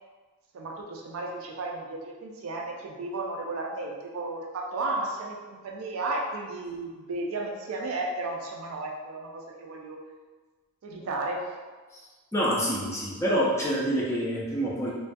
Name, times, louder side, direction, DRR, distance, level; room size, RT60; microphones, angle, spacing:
voice 1, 0.5-10.0 10.8-11.5, right 2 dB, 75° right, 0 dB, 0.4 m, -34 dB
voice 2, 12.3-14.9, equal, 15° left, -5 dB, 0.4 m, -27 dB
2.3 x 2.2 x 2.5 m, 1.3 s
head